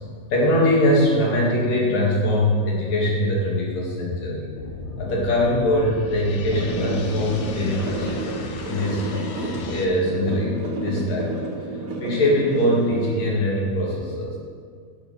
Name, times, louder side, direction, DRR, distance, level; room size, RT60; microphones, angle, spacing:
voice 1, 0.3-4.5 5.0-8.1 8.7-11.4 12.0-14.4, left 1 dB, 85° left, -4 dB, 3.9 m, -22 dB
sound 1, 4.6-9.8, left 3 dB, 70° left, 2.1 m, -35 dB
sound 2, 6.5-13.1, right 2 dB, 45° right, 2.3 m, -30 dB
11.0 x 6.8 x 6.4 m, 2.1 s
omnidirectional pair, 3.8 m